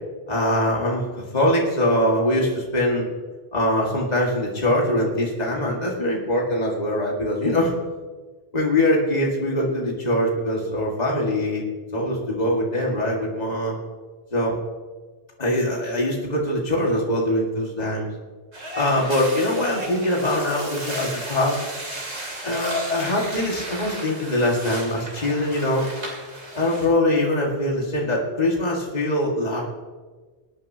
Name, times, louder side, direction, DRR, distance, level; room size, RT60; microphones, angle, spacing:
voice 1, 0.3-3.0 3.5-7.7 8.5-11.6 11.9-13.8 14.3-14.6 15.4-18.1 18.8-21.6 22.4-25.9 26.5-29.6, left 1 dB, 40° left, -2 dB, 2.0 m, -23 dB
sound 1, 18.5-26.9, right 1 dB, 80° right, 3.1 m, -35 dB
23.0 x 9.3 x 2.8 m, 1.4 s
omnidirectional pair, 1.1 m